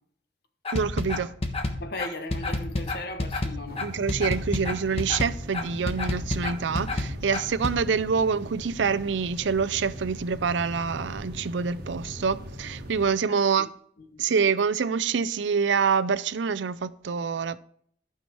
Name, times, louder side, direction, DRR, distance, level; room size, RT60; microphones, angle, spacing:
sound 1, 0.6-7.8, left 2 dB, 35° left, 1.2 m, -29 dB
voice 1, 0.7-1.3 3.8-13.7 14.2-17.6, right 5 dB, 75° right, 0.5 m, -26 dB
voice 2, 1.8-3.8 13.3-13.7 14.0-14.2, left 2 dB, 60° left, 1.3 m, -37 dB
sound 2, 3.7-13.1, equal, 55° right, 1.3 m, -40 dB
12.5 x 5.8 x 4.6 m
head